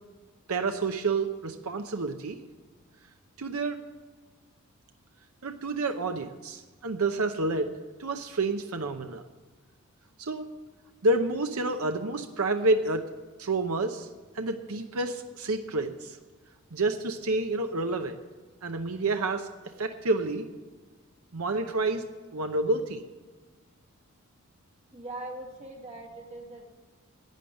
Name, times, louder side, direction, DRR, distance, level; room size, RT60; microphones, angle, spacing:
voice 1, 0.5-2.4 3.4-3.8 5.4-9.2 10.2-10.5 11.0-13.1 13.4-14.1 14.3-16.2 16.7-18.2 18.6-19.5 19.8-20.4 21.3-22.0 22.3-23.0, right 2 dB, 85° right, 6 dB, 0.8 m, -29 dB
voice 2, 24.9-26.6, right 2 dB, 30° right, 0 dB, 2.2 m, -41 dB
11.5 x 8.7 x 7.8 m, 1.3 s
head